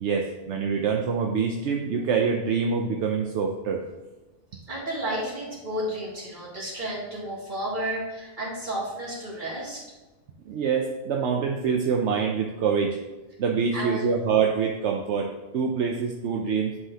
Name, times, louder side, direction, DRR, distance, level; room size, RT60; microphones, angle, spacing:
voice 1, 0.0-3.8 10.5-13.0 13.4-16.8, right 6 dB, 75° right, 2 dB, 1.0 m, -25 dB
voice 2, 4.7-9.8 13.7-14.1, right 1 dB, 40° right, -6 dB, 2.7 m, -32 dB
11.0 x 5.7 x 2.8 m, 1.1 s
omnidirectional pair, 1.2 m